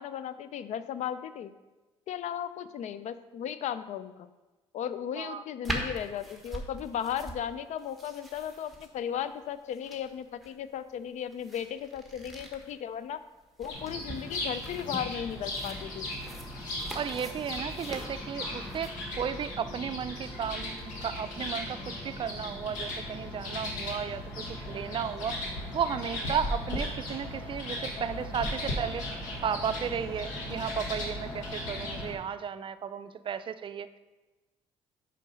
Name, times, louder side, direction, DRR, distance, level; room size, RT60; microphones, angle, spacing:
voice 1, 0.0-1.5 2.1-4.3 4.7-13.2 13.6-16.1, left 9 dB, 65° left, 13 dB, 0.4 m, -36 dB
sound 1, 5.6-18.9, right 1 dB, ahead, 1.3 m, -43 dB
sound 2, 13.7-32.1, left 1 dB, 90° left, 1.3 m, -37 dB
voice 2, 16.9-25.4 25.7-29.1 29.4-33.9, right 7 dB, 40° right, 11 dB, 0.4 m, -34 dB
5.4 x 5.0 x 5.5 m, 1.2 s
supercardioid pair, 75°, 13 cm